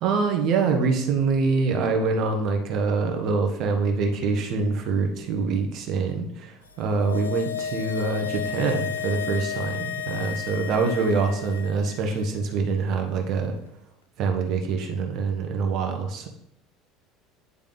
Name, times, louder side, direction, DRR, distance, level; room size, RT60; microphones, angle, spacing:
voice 1, 0.0-13.5 14.2-16.3, right 4 dB, 55° right, 4 dB, 1.2 m, -25 dB
sound 1, 6.7-12.2 12.5-12.6, left 8 dB, 90° left, 0.5 m, -33 dB
9.5 x 3.5 x 4.0 m, 0.74 s
hypercardioid pair, 70°, 0 cm